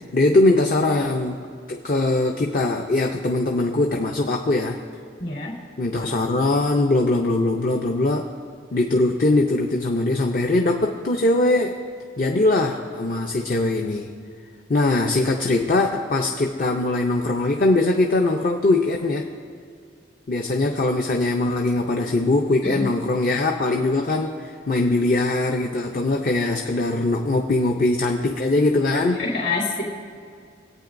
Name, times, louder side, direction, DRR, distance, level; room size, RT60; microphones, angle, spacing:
voice 1, 0.1-1.4 1.7-4.8 5.8-8.3 8.7-11.8 12.2-14.1 14.7-19.3 20.3-29.2, left 2 dB, 45° left, 1 dB, 0.6 m, -21 dB
voice 2, 5.2-5.5 22.6-22.8 29.2-29.8, left 3 dB, 65° left, -3 dB, 2.9 m, -26 dB
25.5 x 8.7 x 2.6 m, 2.3 s
head